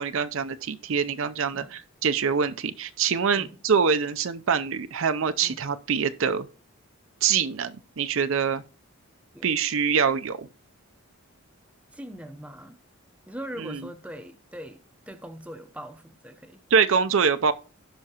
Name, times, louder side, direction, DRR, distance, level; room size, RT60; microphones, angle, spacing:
voice 1, 0.0-6.5 7.2-8.6 9.4-10.5 13.6-13.8 16.7-17.5, right 6 dB, 60° right, 0.5 m, -24 dB
voice 2, 11.9-12.8 13.3-16.6, equal, 5° right, 0.6 m, -41 dB
16.5 x 5.7 x 2.9 m
head